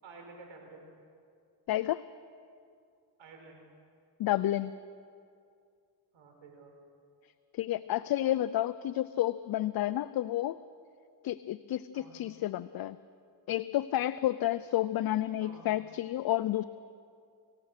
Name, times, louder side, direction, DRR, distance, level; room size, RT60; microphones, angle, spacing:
voice 1, 0.0-0.8 3.2-3.6 6.1-6.7 11.9-12.2 15.4-15.7, right 3 dB, 70° right, 2 dB, 4.8 m, -51 dB
voice 2, 1.7-2.0 4.2-4.7 7.5-10.6 11.2-13.0 13.5-16.6, left 14 dB, 50° left, 14 dB, 0.5 m, -30 dB
26.5 x 16.0 x 6.7 m, 2.3 s
cardioid pair, 100°, 47 cm